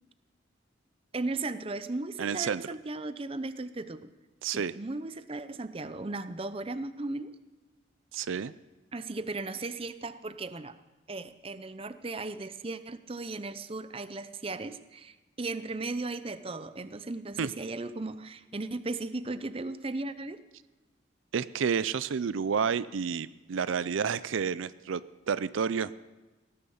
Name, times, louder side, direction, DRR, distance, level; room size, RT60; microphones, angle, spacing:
voice 1, 1.1-4.1 4.5-7.3 8.9-10.8 11.1-20.4, right 2 dB, 30° right, 12 dB, 0.6 m, -36 dB
voice 2, 2.2-2.6 4.4-4.7 8.1-8.5 17.4-17.5 21.3-25.9, right 6 dB, 80° right, 17 dB, 0.4 m, -30 dB
18.0 x 10.5 x 7.1 m, 1.2 s
head